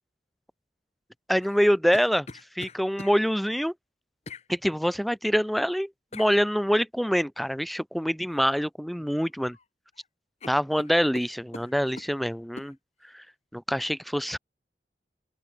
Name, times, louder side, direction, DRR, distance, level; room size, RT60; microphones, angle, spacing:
voice 1, 1.3-2.3 2.6-3.7 4.5-9.6 10.5-12.8 13.1-13.2 13.5-14.4, equal, ahead, 0.4 m, -25 dB
sound 1, 1.4-3.2 4.3-4.5 6.1-6.3 8.3-8.6 9.0-9.6 9.9-10.1 10.4-12.1 12.6-12.7, left 3 dB, 40° left, 1.3 m, -44 dB
open air
head